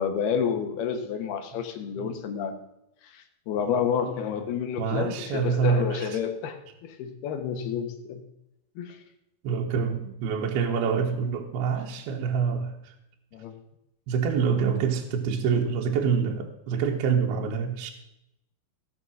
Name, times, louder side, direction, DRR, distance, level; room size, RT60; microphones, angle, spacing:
voice 1, 0.0-2.6 3.0-8.2 8.8-9.0 13.3-13.6, left 7 dB, 70° left, 7 dB, 2.9 m, -30 dB
voice 2, 4.8-6.2 9.4-12.9 14.1-17.9, right 6 dB, 70° right, 1 dB, 2.9 m, -26 dB
17.5 x 6.7 x 6.3 m, 0.85 s
omnidirectional pair, 5.0 m